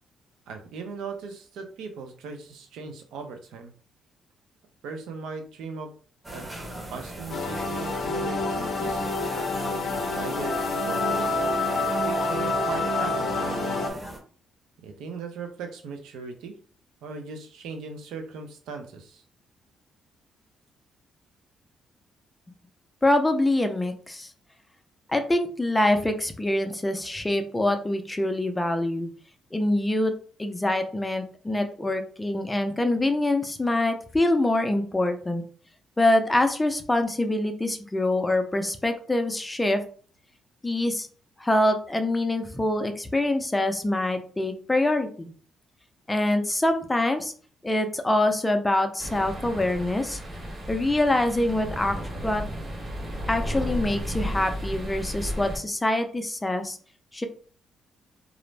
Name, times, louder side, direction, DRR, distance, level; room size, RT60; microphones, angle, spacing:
voice 1, 0.5-3.7 4.8-5.9 6.3-6.5 6.9-9.1 9.9-10.6 10.8-13.8 14.8-16.6 17.0-19.2, right 4 dB, 85° right, 5 dB, 0.5 m, -38 dB
sound 1, 6.2-14.2, right 1 dB, 15° right, 0.8 m, -40 dB
sound 2, 7.3-13.9, left 2 dB, 55° left, 0.6 m, -27 dB
voice 2, 23.0-24.3 25.1-29.1 29.5-30.1 30.4-35.4 36.0-39.8 40.6-41.1 41.4-45.3 46.1-47.3 47.6-50.2 50.7-51.9 52.2-52.4 53.3-56.8 57.1-57.3, left 1 dB, 15° left, 6 dB, 0.4 m, -25 dB
sound 3, 49.0-55.6, equal, 35° right, 1.1 m, -33 dB
2.4 x 2.0 x 3.2 m, 0.43 s
cardioid pair, 90°, 0 cm